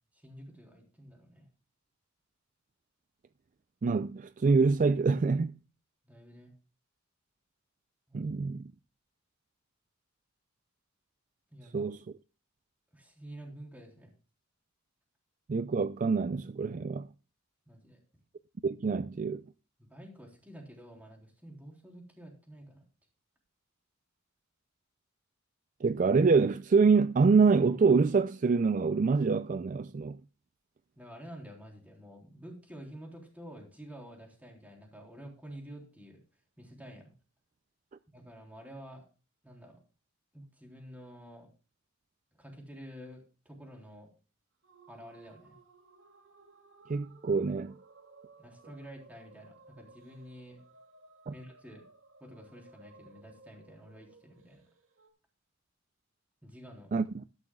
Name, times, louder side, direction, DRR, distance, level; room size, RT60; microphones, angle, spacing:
voice 1, 0.1-1.5 6.1-6.5 8.1-8.3 11.5-11.9 12.9-14.1 17.7-18.0 19.8-22.8 31.0-36.2 36.6-37.1 38.1-39.0 39.4-39.8 40.3-41.5 42.4-44.1 44.9-45.6 48.4-50.6 51.3-51.8 52.2-54.6 56.4-56.9, equal, 10° right, 3.7 m, -49 dB
voice 2, 3.8-5.5 8.1-8.7 11.7-12.0 15.5-17.1 18.6-19.4 25.8-30.2 46.9-47.7 51.3-51.4 56.9-57.2, right 4 dB, 40° right, 0.4 m, -26 dB
sound 1, 44.6-55.1, right 3 dB, 70° right, 2.6 m, -59 dB
13.5 x 13.0 x 2.3 m
head